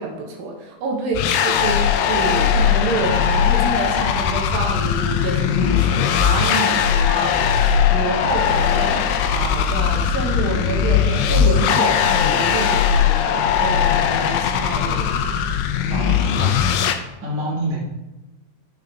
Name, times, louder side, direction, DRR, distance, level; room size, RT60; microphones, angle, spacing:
voice 1, 0.0-7.6 7.9-15.4, right 3 dB, 75° right, 0 dB, 2.8 m, -27 dB
sound 1, 1.1-16.9, left 8 dB, 80° left, 2.1 m, -19 dB
voice 2, 15.4-17.8, right 1 dB, 30° right, -5 dB, 1.8 m, -29 dB
8.2 x 6.7 x 3.5 m, 1.0 s
omnidirectional pair, 4.3 m